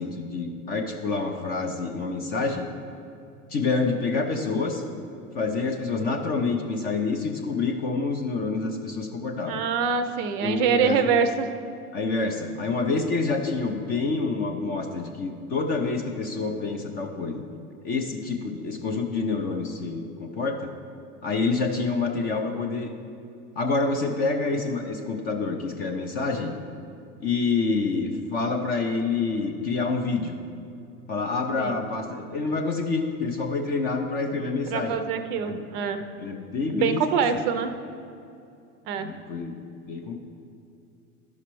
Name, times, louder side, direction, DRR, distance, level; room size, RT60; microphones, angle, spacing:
voice 1, 0.0-2.6 3.5-4.8 5.3-9.6 10.4-11.1 11.9-17.4 17.8-20.7 21.2-22.9 23.6-26.6 27.2-30.4 31.1-34.9 35.5-35.6 36.2-37.2 39.0-39.6 39.9-40.2, left 4 dB, 20° left, 4 dB, 0.4 m, -27 dB
voice 2, 9.5-11.5 31.6-31.8 34.7-36.0 36.7-37.7 38.9-39.1, right 6 dB, 35° right, 8 dB, 0.5 m, -25 dB
11.5 x 5.8 x 3.0 m, 2.5 s
figure-of-eight pair, 90°, 44 cm